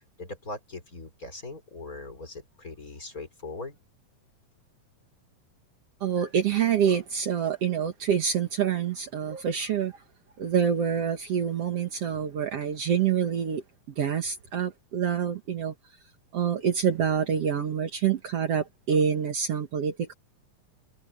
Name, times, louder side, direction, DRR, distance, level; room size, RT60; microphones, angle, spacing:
voice 1, 0.0-3.8, left 2 dB, 25° left, 4.1 m, -40 dB
voice 2, 6.0-9.9 10.4-13.6 14.0-15.7 16.3-20.1, right 8 dB, 60° right, 2.3 m, -26 dB
omnidirectional pair, 3.4 m